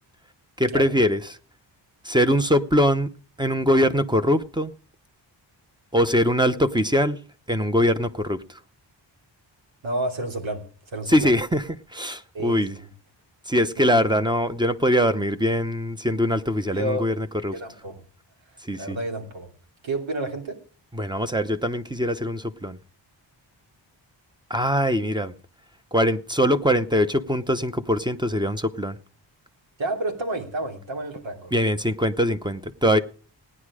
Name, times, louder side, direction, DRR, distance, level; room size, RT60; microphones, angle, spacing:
voice 1, 0.6-1.4 2.0-3.1 3.4-4.7 5.9-7.2 7.5-8.4 11.1-11.6 11.9-12.8 13.5-17.5 18.7-19.0 20.9-22.8 24.5-25.3 25.9-29.0 31.5-33.0, equal, 10° right, 0.8 m, -22 dB
voice 2, 9.8-10.6 10.9-11.3 12.3-12.9 13.8-14.2 16.7-17.1 17.5-18.0 18.8-19.5 19.8-20.6 29.8-31.5, right 1 dB, 85° right, 3.0 m, -30 dB
17.0 x 9.8 x 4.9 m
wide cardioid pair, 135°, 45 cm